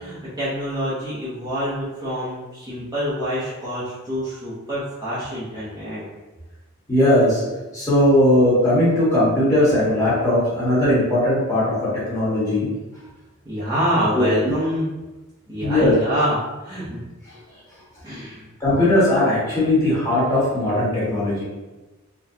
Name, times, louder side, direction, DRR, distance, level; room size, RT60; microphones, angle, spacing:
voice 1, 0.0-6.0 13.4-14.9 15.5-17.0 18.0-18.5, equal, 15° right, -11 dB, 0.7 m, -26 dB
voice 2, 6.9-7.4 7.7-12.7 14.1-14.5 15.6-15.9 18.6-21.4, left 1 dB, 15° left, -10 dB, 1.3 m, -18 dB
4.0 x 2.2 x 2.7 m, 1.1 s
head